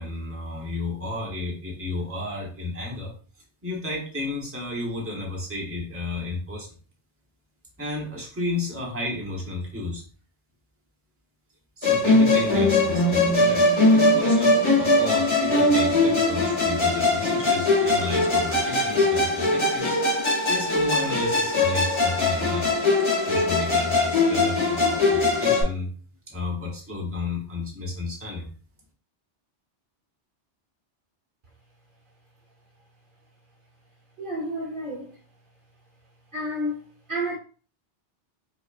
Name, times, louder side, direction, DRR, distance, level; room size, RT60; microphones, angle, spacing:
voice 1, 0.0-3.1 3.6-6.7 7.8-10.0 11.8-20.2 20.4-22.8 23.2-25.9 26.3-28.5, left 2 dB, 15° right, 0.9 m, -32 dB
Musical instrument, 11.8-25.6, left 2 dB, 25° left, 1.0 m, -21 dB
voice 2, 34.2-35.1 36.3-37.4, equal, 55° right, 0.9 m, -30 dB
5.0 x 2.3 x 2.4 m
omnidirectional pair, 1.1 m